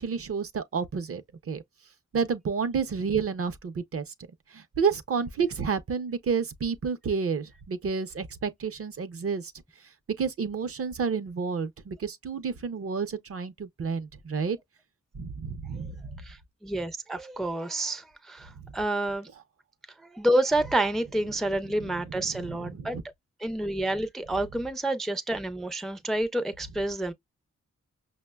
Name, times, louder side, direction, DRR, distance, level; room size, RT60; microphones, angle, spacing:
voice 1, 0.0-1.6 2.1-4.0 4.5-9.5 10.2-14.6 15.1-16.1 22.5-22.9, right 5 dB, 50° right, 0.5 m, -30 dB
voice 2, 16.2-19.3 20.0-23.0 23.4-27.1, right 1 dB, ahead, 0.3 m, -29 dB
5.8 x 2.1 x 2.2 m
wide cardioid pair, 135°, 29 cm